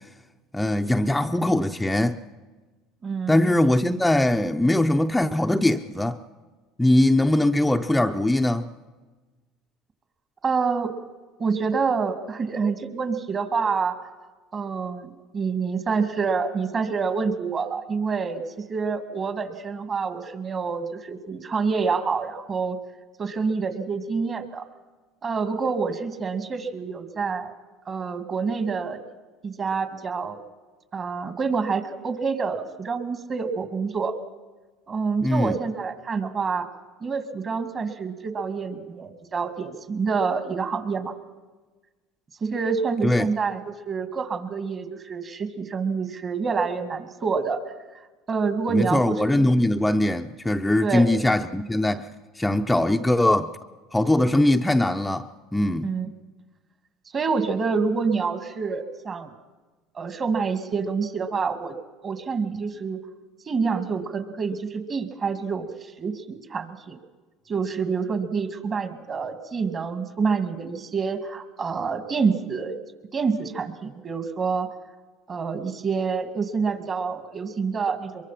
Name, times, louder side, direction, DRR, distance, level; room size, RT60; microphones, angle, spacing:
voice 1, 0.5-2.2 3.3-6.2 6.8-8.7 35.2-35.6 43.0-43.3 48.7-52.1 52.4-53.5 53.9-55.9, left 1 dB, 10° left, 0.7 m, -21 dB
voice 2, 3.0-3.5 10.4-10.9 11.4-14.0 14.5-22.8 23.2-24.7 25.2-27.5 27.9-29.0 29.4-30.4 30.9-34.1 34.9-36.7 37.0-41.1 42.4-47.6 48.3-49.2 50.8-51.1 55.8-56.1 57.1-59.3 59.9-61.8 62.0-63.0 63.5-67.0 67.5-72.7 73.1-74.7 75.3-78.2, right 5 dB, 35° right, 2.2 m, -27 dB
23.0 x 23.0 x 5.9 m
supercardioid pair, 90°, 0 cm